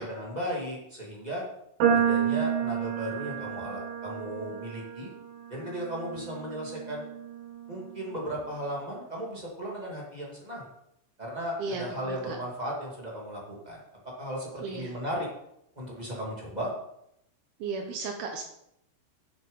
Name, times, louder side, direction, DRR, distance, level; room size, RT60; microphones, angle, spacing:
voice 1, 0.0-1.4 1.9-5.1 5.5-7.1 7.7-10.7 11.2-13.8 14.0-15.3 15.7-16.7, equal, 20° right, -3 dB, 1.0 m, -36 dB
sound 1, 1.8-8.1, right 8 dB, 90° right, 5.1 m, -31 dB
voice 2, 11.6-12.4 14.6-14.9 17.6-18.4, right 4 dB, 70° right, 3 dB, 2.6 m, -35 dB
10.5 x 7.6 x 5.5 m, 0.77 s
omnidirectional pair, 5.3 m